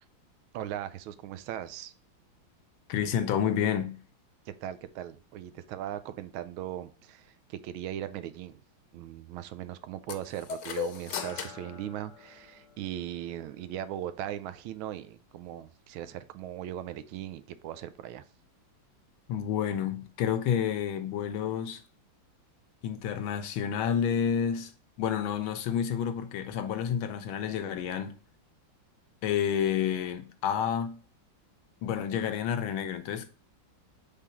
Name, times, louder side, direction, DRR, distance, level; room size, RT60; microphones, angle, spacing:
voice 1, 0.5-1.9 4.5-8.6 8.9-18.2, right 11 dB, 90° right, 1.4 m, -39 dB
voice 2, 2.9-4.0 19.3-21.8 22.8-24.7 25.0-28.2 29.2-31.0 31.8-33.3, left 8 dB, 85° left, 1.5 m, -29 dB
sound 1, 10.1-12.8, left 8 dB, 65° left, 1.2 m, -38 dB
5.0 x 3.6 x 5.6 m
omnidirectional pair, 2.2 m